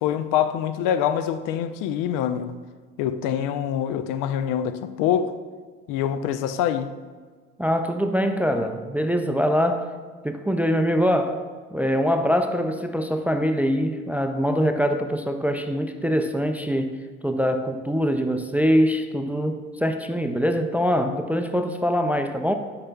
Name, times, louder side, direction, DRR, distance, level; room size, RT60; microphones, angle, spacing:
voice 1, 0.0-2.5 3.0-5.4 5.9-7.0, left 9 dB, 55° left, 0.5 m, -25 dB
voice 2, 7.6-9.9 10.2-11.4 11.7-16.9 17.2-22.5, equal, 5° right, 0.4 m, -23 dB
13.0 x 5.8 x 2.3 m
figure-of-eight pair, 60°, 39 cm